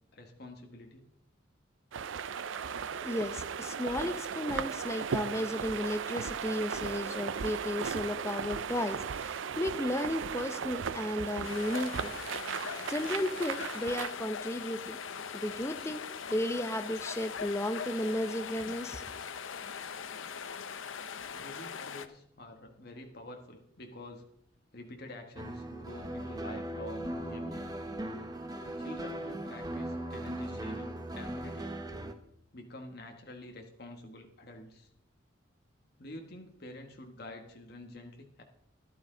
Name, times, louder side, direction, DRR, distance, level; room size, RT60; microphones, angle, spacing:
voice 1, 0.1-1.1 21.3-24.2 24.7-27.6 28.8-31.8 32.5-34.9 36.0-38.4, left 1 dB, 55° left, 3 dB, 1.5 m, -47 dB
sound 1, 1.9-14.1, right 6 dB, 80° right, 0.5 m, -36 dB
voice 2, 3.0-12.2 12.6-15.0 15.3-16.0 16.3-19.0, left 1 dB, 15° left, 9 dB, 0.6 m, -34 dB
sound 2, 11.4-22.1, left 6 dB, 85° left, 0.7 m, -41 dB
sound 3, 25.4-32.1, right 1 dB, 20° right, 0.8 m, -38 dB
13.0 x 11.5 x 3.9 m, 0.72 s
head